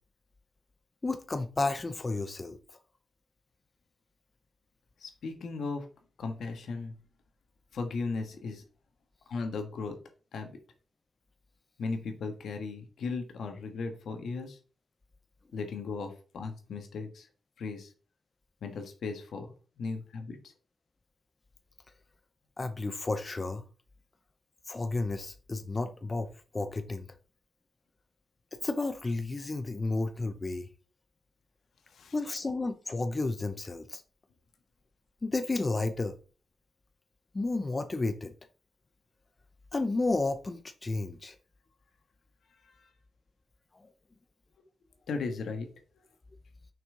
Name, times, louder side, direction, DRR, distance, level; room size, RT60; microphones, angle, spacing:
voice 1, 1.0-2.6 22.6-23.6 24.7-27.0 28.5-30.7 32.1-34.0 35.2-36.2 37.3-38.3 39.7-41.4, left 3 dB, 35° left, 0.7 m, -32 dB
voice 2, 5.0-5.9 6.2-6.9 7.7-8.6 9.3-10.0 10.3-10.5 11.8-14.6 15.5-17.3 17.6-17.9 18.6-19.5 19.8-20.5 31.9-32.1 42.6-42.9 45.1-45.7, left 4 dB, 85° left, 1.5 m, -36 dB
6.1 x 5.5 x 3.8 m
cardioid pair, 55°, 0 cm